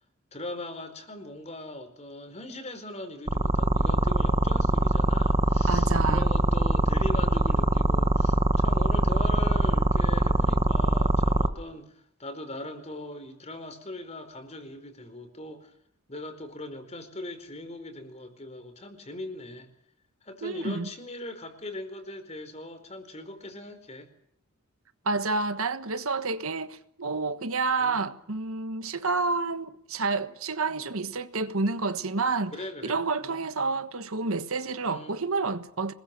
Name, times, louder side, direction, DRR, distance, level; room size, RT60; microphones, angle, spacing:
voice 1, 0.3-15.7 16.1-19.7 20.2-24.1 27.8-28.1 32.5-33.4 34.8-35.2, left 1 dB, 30° left, 4.6 m, -40 dB
sound 1, 3.3-11.5, right 1 dB, 25° right, 1.3 m, -22 dB
voice 2, 5.7-6.3 20.4-20.9 25.0-32.5 32.8-35.9, right 3 dB, 70° right, 1.4 m, -29 dB
26.5 x 21.5 x 6.9 m
head